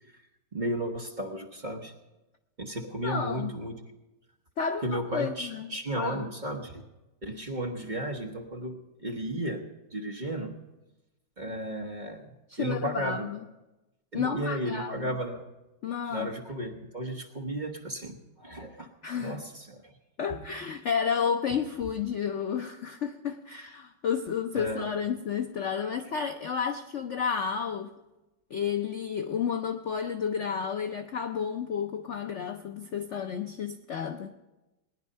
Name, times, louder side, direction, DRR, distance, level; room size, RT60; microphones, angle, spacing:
voice 1, 0.5-1.9 2.6-3.8 4.8-6.9 7.2-10.5 11.4-12.3 12.6-13.3 14.1-15.4 16.1-18.9 19.2-19.9 20.3-20.4 24.5-24.9, right 1 dB, 30° right, 2 dB, 1.0 m, -34 dB
voice 2, 3.0-3.5 4.6-6.2 12.5-13.4 14.1-15.2 15.8-16.3 19.0-19.4 20.2-27.9 28.5-34.3, left 7 dB, 65° left, 7 dB, 0.7 m, -31 dB
19.5 x 10.5 x 5.4 m, 1.0 s
omnidirectional pair, 1.9 m